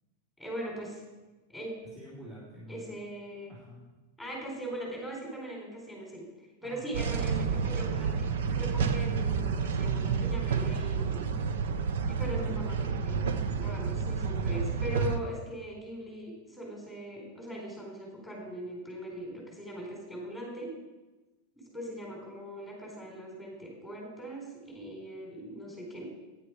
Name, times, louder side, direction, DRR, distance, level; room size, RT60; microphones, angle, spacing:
voice 1, 0.4-1.0 1.5-1.7 2.7-3.5 4.2-6.3 6.6-8.2 8.5-11.2 12.1-13.2 13.5-20.7 21.7-26.0, right 1 dB, ahead, -3 dB, 4.4 m, -40 dB
voice 2, 1.9-2.9 3.5-3.8 6.6-7.0 12.1-12.6, left 1 dB, 25° right, -8 dB, 3.5 m, -47 dB
cl yard ambience train pass by, 6.9-15.2, right 6 dB, 80° right, 0.8 m, -30 dB
10.0 x 9.5 x 4.9 m, 1.1 s
supercardioid pair, 145°, 0 cm